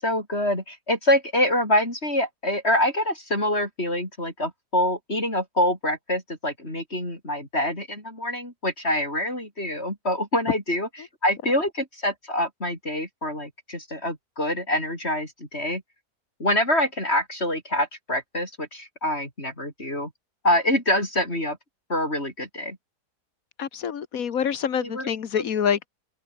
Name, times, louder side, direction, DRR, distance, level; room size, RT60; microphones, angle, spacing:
voice 1, 0.0-10.9 11.2-15.8 16.4-20.1 20.4-21.6 21.9-22.8 24.8-25.1 25.4-25.5, left 1 dB, 40° left, 8.3 m, -25 dB
voice 2, 23.6-25.9, left 8 dB, 65° left, 1.6 m, -26 dB
omnidirectional pair, 1.6 m